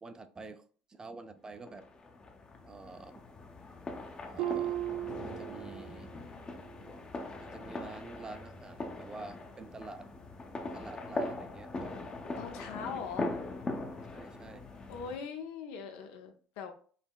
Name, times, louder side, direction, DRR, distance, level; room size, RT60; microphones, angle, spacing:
voice 1, 0.0-0.6 0.9-1.8 2.7-3.2 4.2-6.1 7.4-10.1 10.7-12.1 14.1-14.6, right 3 dB, 20° right, 9 dB, 0.4 m, -48 dB
sound 1, 1.7-15.2, left 2 dB, 25° left, 0.6 m, -41 dB
Harp, 4.4-6.2 6.5-6.9 7.5-7.6, right 13 dB, 85° right, 0.4 m, -37 dB
voice 2, 12.4-13.4 14.9-16.7, left 6 dB, 85° left, 5 dB, 0.7 m, -41 dB
5.6 x 2.1 x 2.2 m, 0.43 s
supercardioid pair, 100°, 3 cm